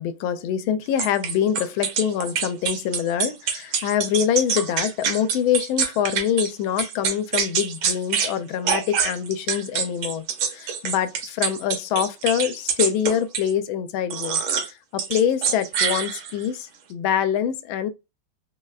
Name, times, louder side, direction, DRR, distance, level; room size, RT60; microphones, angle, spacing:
voice 1, 0.0-10.2 10.5-14.4 14.9-17.9, left 9 dB, 85° left, 1.4 m, -25 dB
sound 1, 1.0-6.5 6.8-8.3 8.7-13.5 14.1-14.7 15.0-16.5, right 7 dB, 85° right, 1.7 m, -25 dB
4.0 x 3.2 x 2.2 m
omnidirectional pair, 2.2 m